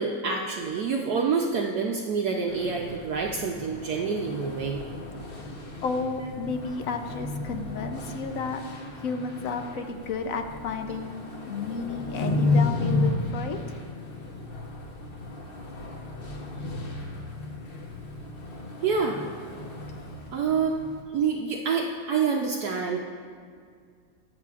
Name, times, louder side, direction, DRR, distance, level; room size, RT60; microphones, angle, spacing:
voice 1, 0.0-4.8 18.8-19.2 20.3-20.8 21.1-23.0, right 5 dB, 65° right, 1 dB, 1.0 m, -27 dB
sound 1, 2.5-21.0, left 2 dB, 40° left, 0.9 m, -33 dB
voice 2, 5.8-8.6 9.0-11.2 11.5-13.6, left 4 dB, 70° left, 6 dB, 0.8 m, -32 dB
22.0 x 7.5 x 2.4 m, 2.1 s
omnidirectional pair, 2.1 m